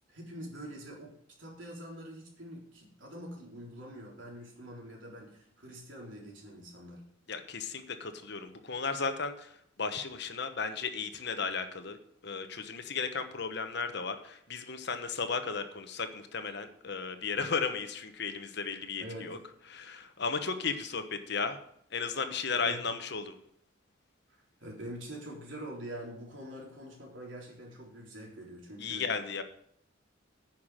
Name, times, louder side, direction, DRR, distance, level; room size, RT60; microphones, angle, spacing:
voice 1, 0.1-7.1 19.0-19.3 22.5-22.8 24.6-29.1, right 1 dB, 75° right, -1 dB, 3.7 m, -45 dB
voice 2, 7.3-12.0 12.2-19.4 19.7-21.6 21.9-23.3 28.8-29.4, left 5 dB, 60° left, 8 dB, 1.1 m, -35 dB
9.9 x 6.0 x 7.5 m, 0.70 s
head